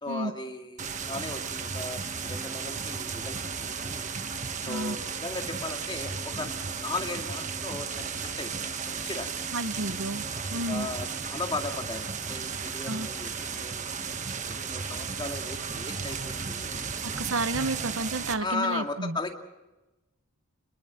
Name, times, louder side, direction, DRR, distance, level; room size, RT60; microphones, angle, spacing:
voice 1, 0.0-4.1 4.7-9.4 10.5-14.0 14.5-16.9 18.4-19.4, left 3 dB, 20° left, 4 dB, 2.2 m, -37 dB
sound 1, 0.8-18.3, right 5 dB, 35° right, 1.3 m, -34 dB
voice 2, 4.6-5.0 9.5-10.2 10.5-10.9 12.9-13.1 17.0-19.2, right 2 dB, 70° right, 12 dB, 1.0 m, -31 dB
29.5 x 22.0 x 5.9 m, 1.1 s
head